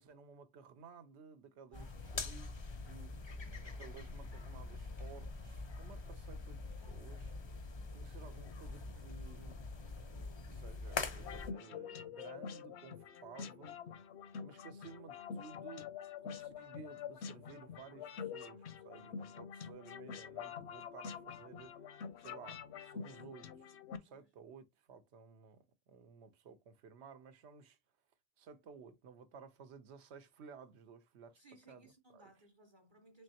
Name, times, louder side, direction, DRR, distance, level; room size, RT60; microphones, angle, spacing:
voice 1, 0.0-2.5 2.9-3.2 3.6-7.3 7.9-9.6 10.5-13.8 14.4-15.9 16.2-21.7 22.2-23.7 24.0-27.8 28.4-31.4 31.7-32.2, right 6 dB, 90° right, 1.0 m, -55 dB
sound 1, 1.7-11.5, left 3 dB, 40° left, 0.4 m, -44 dB
voice 2, 1.7-2.2 3.3-3.8 24.1-24.3 31.3-33.2, right 2 dB, 30° right, 0.6 m, -63 dB
sound 2, 11.2-24.0, left 7 dB, 85° left, 0.9 m, -47 dB
3.7 x 3.3 x 2.7 m
omnidirectional pair, 1.1 m